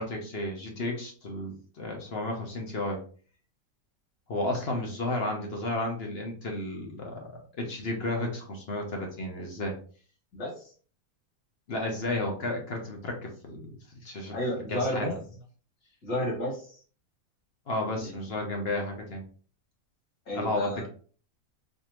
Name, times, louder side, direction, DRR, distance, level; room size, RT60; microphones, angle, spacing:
voice 1, 0.0-3.0 4.3-7.2 7.6-9.7 11.7-14.4 14.7-15.2 17.7-19.2 20.3-20.9, left 1 dB, 50° left, 2 dB, 0.9 m, -32 dB
voice 2, 10.3-10.7 14.3-15.1 16.0-16.8 18.0-18.3 20.3-20.9, left 1 dB, 75° left, -3 dB, 2.5 m, -32 dB
4.2 x 2.7 x 3.0 m, 0.42 s
omnidirectional pair, 1.6 m